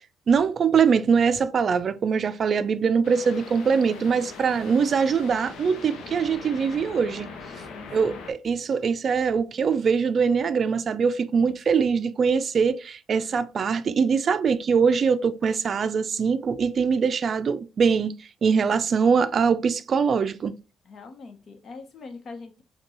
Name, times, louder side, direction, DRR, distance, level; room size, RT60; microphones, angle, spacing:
voice 1, 0.3-7.3 7.9-18.1 18.4-20.5, right 6 dB, 50° right, 0.4 m, -22 dB
sound 1, 3.0-8.3, left 4 dB, 80° left, 0.6 m, -41 dB
voice 2, 3.7-4.1 7.7-8.2 11.3-11.6 20.8-22.6, left 4 dB, 55° left, 0.9 m, -43 dB
5.1 x 2.3 x 3.0 m
cardioid pair, 90°, 0 cm